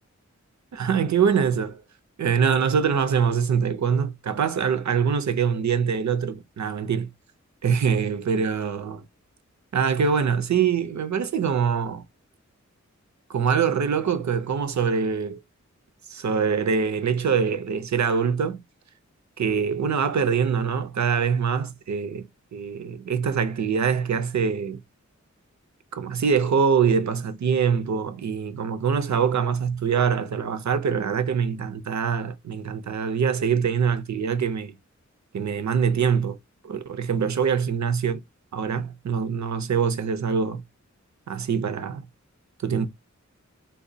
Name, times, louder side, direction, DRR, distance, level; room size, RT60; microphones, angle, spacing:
voice 1, 0.7-1.8 2.2-7.1 7.6-9.0 9.7-12.0 13.3-15.4 16.1-18.6 19.4-22.3 22.5-24.8 25.9-34.7 35.3-36.4 36.6-38.2 38.5-40.6 41.3-42.0 42.6-42.9, right 6 dB, 70° right, 0.6 m, -24 dB
4.0 x 2.2 x 2.7 m
wide cardioid pair, 80°, 30 cm